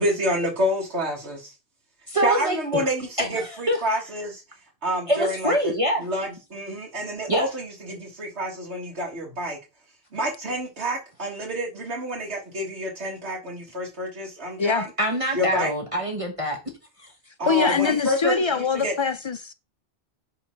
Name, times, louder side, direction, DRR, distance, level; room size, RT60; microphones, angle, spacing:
voice 1, 0.0-1.5 2.2-4.4 4.8-5.5 6.0-9.6 10.1-14.9 15.4-15.7 17.4-18.9, equal, 65° right, 2.0 m, -28 dB
voice 2, 2.1-2.8 3.2-3.8 5.1-6.1 7.3-7.5 15.0-16.6 17.0-17.1 17.6-17.9, equal, 30° right, 1.3 m, -25 dB
voice 3, 17.4-19.5, left 5 dB, 50° left, 0.3 m, -23 dB
7.4 x 3.7 x 5.6 m
omnidirectional pair, 1.2 m